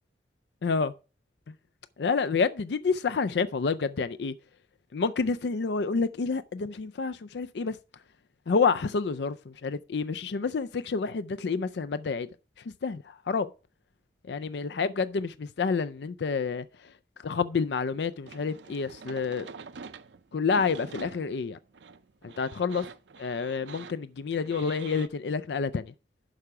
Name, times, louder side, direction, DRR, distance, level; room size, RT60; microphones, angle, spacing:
voice 1, 0.6-0.9 2.0-4.3 4.9-7.8 8.5-12.3 12.8-13.5 14.3-16.7 17.2-19.5 20.3-21.6 22.2-22.9 23.2-25.9, left 5 dB, 70° left, 0.4 m, -28 dB
sound 1, 18.3-25.1, right 5 dB, 85° right, 0.6 m, -46 dB
11.5 x 4.9 x 5.7 m
head